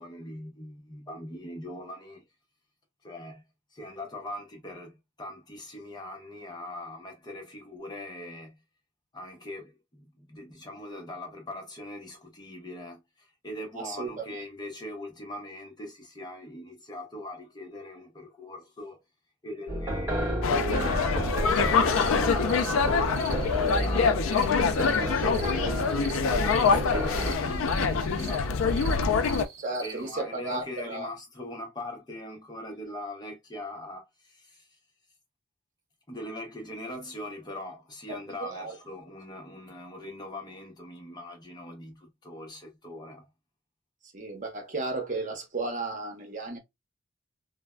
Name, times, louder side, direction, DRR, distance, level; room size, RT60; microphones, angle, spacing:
voice 1, 0.0-2.2 3.0-3.4 3.7-8.6 9.1-19.0 19.4-23.0 23.5-24.6 25.1-29.0 29.7-34.8 36.1-43.3, left 1 dB, 20° left, 0.6 m, -41 dB
voice 2, 13.8-14.4 29.6-31.1 38.4-38.8 44.1-46.6, right 3 dB, 40° right, 0.8 m, -34 dB
sound 1, 19.7-27.3, right 1 dB, 10° right, 1.4 m, -31 dB
sound 2, 20.4-29.5, left 5 dB, 85° left, 0.4 m, -25 dB
sound 3, 21.5-30.2, right 6 dB, 85° right, 0.6 m, -44 dB
3.3 x 2.0 x 2.2 m
head